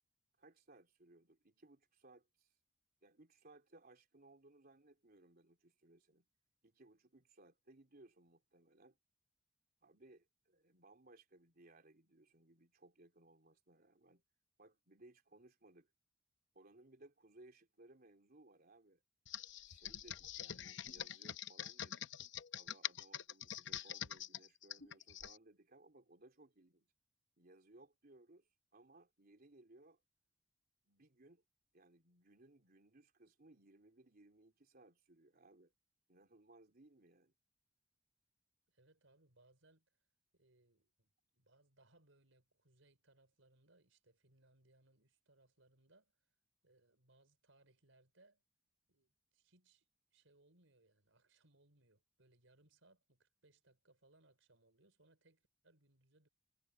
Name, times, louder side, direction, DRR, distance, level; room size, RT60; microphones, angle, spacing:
voice 1, 0.4-2.6 3.0-6.3 6.6-9.0 9.8-14.2 14.6-15.9 16.5-19.0 19.7-22.1 22.5-26.9 27.4-30.0 30.8-31.4 31.7-35.7 36.1-37.3, right 2 dB, 50° right, 3.5 m, -64 dB
Computer keyboard, 19.3-25.4, left 10 dB, 70° left, 0.7 m, -45 dB
voice 2, 38.7-39.9 40.3-46.1 46.6-48.4 48.9-56.3, right 2 dB, 90° right, 4.8 m, -71 dB
head